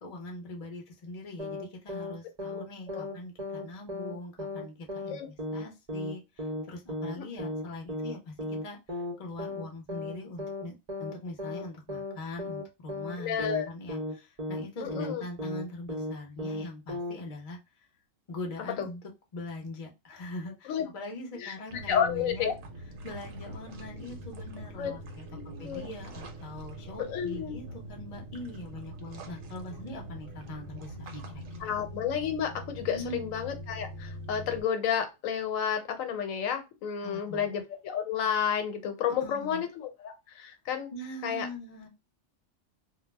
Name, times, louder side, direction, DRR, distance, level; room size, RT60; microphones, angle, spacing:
voice 1, 0.0-10.7 11.0-17.6 18.3-19.0 19.3-22.5 23.0-25.3 25.6-31.7 32.9-33.3 37.0-37.5 39.2-39.6 40.9-41.9, left 2 dB, 40° left, 1 dB, 0.6 m, -42 dB
sound 1, 1.4-1.6 1.9-2.1 2.4-2.6 2.9-3.1 3.4-3.6 3.9-4.1 4.4-4.6 4.9-5.1 5.4-5.6 5.9-6.1 6.4-6.6 6.9-7.1 7.4-7.6 7.9-8.1 8.4-8.6 8.9-9.1 9.4-9.6 9.9-10.1 10.4-10.6 10.9-11.1 11.4-11.6 11.9-12.1 12.4-12.6 12.9-13.1 13.4-13.6 13.9-14.1 14.4-14.6 14.9-15.1 15.4-15.6 15.9-16.1 16.4-16.6 16.9-17.1, left 1 dB, 45° right, 0.5 m, -35 dB
voice 2, 13.2-13.7 14.8-15.2 18.8-18.9 20.7-20.9 21.3-21.5 21.9-22.5 24.8-24.9 25.3-25.9 27.0-27.6 31.6-40.9 41.2-41.5, left 8 dB, 85° left, 6 dB, 1.0 m, -31 dB
sound 2, 21.7-34.6, right 1 dB, 75° right, 0.9 m, -43 dB
2.3 x 2.0 x 3.2 m, 0.25 s
omnidirectional pair, 1.4 m